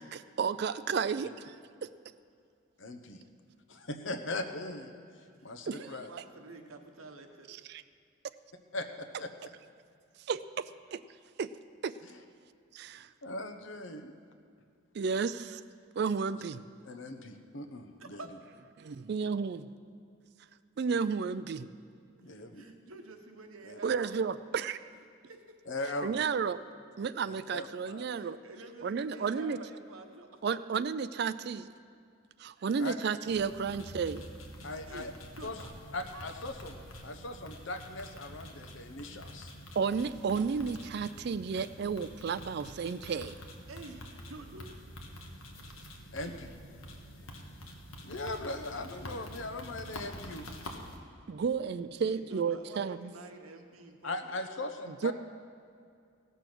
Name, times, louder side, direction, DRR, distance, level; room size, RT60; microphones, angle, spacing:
voice 1, 0.0-1.5 1.8-1.9 5.7-5.8 7.5-7.8 10.3-10.6 10.9-11.0 11.4-11.5 11.8-11.9 12.7-13.1 14.9-15.6 16.0-16.6 18.8-19.7 20.8-21.7 23.8-24.8 26.0-26.6 27.0-28.4 28.8-29.6 30.4-31.7 32.4-34.2 39.8-43.3 51.3-53.1 55.0-55.1, right 6 dB, 50° right, 14 dB, 0.3 m, -32 dB
voice 2, 2.8-3.2 3.7-4.9 5.4-6.1 8.7-9.3 12.0-12.2 13.2-14.1 16.8-18.2 22.2-22.6 23.6-23.8 25.7-26.1 27.2-28.1 32.8-32.9 34.6-35.1 35.4-35.6 35.9-36.7 37.0-39.5 46.1-46.5 48.0-50.5 54.0-55.1, left 2 dB, 70° left, 6 dB, 0.9 m, -39 dB
voice 3, 5.8-7.6 18.0-18.3 22.2-24.1 25.2-25.6 28.1-30.4 34.8-35.7 36.1-36.3 43.7-44.8 52.1-54.3, right 2 dB, 90° right, 5 dB, 1.2 m, -49 dB
sound 1, 33.3-51.0, equal, 90° left, 1.4 m, -47 dB
17.0 x 6.9 x 6.1 m, 2.4 s
head